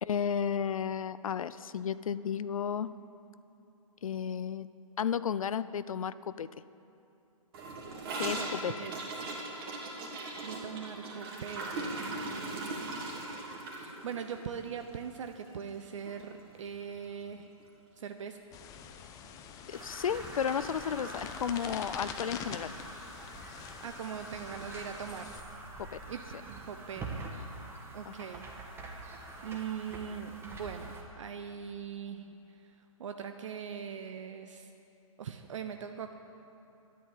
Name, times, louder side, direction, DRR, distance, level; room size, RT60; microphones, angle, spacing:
voice 1, 0.0-2.9 4.0-4.7 5.0-6.5 8.2-8.7 19.7-22.7 25.8-26.0 28.1-28.2, left 8 dB, 70° left, 15 dB, 0.5 m, -33 dB
Gurgling / Toilet flush, 7.5-15.8 16.1-16.2 16.5-16.9 17.2-17.3 17.6-17.7 18.6-18.7, right 2 dB, 40° right, 2.9 m, -39 dB
voice 2, 8.4-9.1 10.4-13.4 13.7-17.5 18.0-18.4 23.8-25.4 26.1-26.2 26.5-27.3 27.9-28.5 29.4-32.7 33.0-34.7 35.2-36.1, right 7 dB, 60° right, 7 dB, 0.8 m, -41 dB
sound 1, 18.5-25.4, left 7 dB, 20° left, 0.7 m, -45 dB
sound 2, 19.7-31.0, right 2 dB, 15° right, 1.4 m, -45 dB
12.5 x 11.0 x 7.6 m, 2.8 s
hypercardioid pair, 140°, 18 cm